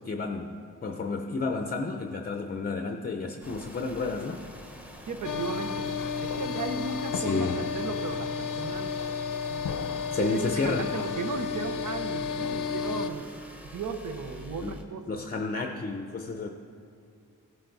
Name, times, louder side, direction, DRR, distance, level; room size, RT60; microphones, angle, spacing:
voice 1, 0.1-0.5 0.8-4.4 7.1-7.6 10.1-10.9 14.6-14.8 15.1-16.5, left 3 dB, 30° left, 4 dB, 0.6 m, -31 dB
sound 1, 3.4-14.8, equal, 5° right, 1.0 m, -47 dB
voice 2, 5.1-5.9 6.2-9.0 9.5-13.3 13.6-15.2, right 5 dB, 70° right, 7 dB, 1.0 m, -36 dB
sound 2, 5.2-13.1, left 6 dB, 80° left, 0.6 m, -32 dB
15.0 x 11.5 x 4.0 m, 2.4 s
wide cardioid pair, 160°, 32 cm